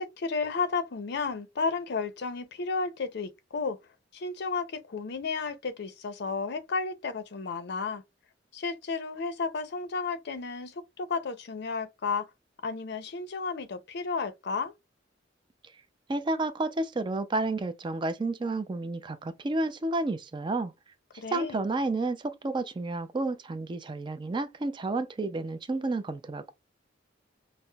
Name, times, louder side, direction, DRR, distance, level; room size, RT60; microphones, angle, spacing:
voice 1, 0.0-3.8 4.1-8.0 8.5-12.3 12.6-14.7 21.2-21.6, left 4 dB, 60° left, 0.5 m, -32 dB
voice 2, 16.1-20.7 21.3-26.5, right 2 dB, 25° right, 0.4 m, -31 dB
5.4 x 2.0 x 2.2 m
head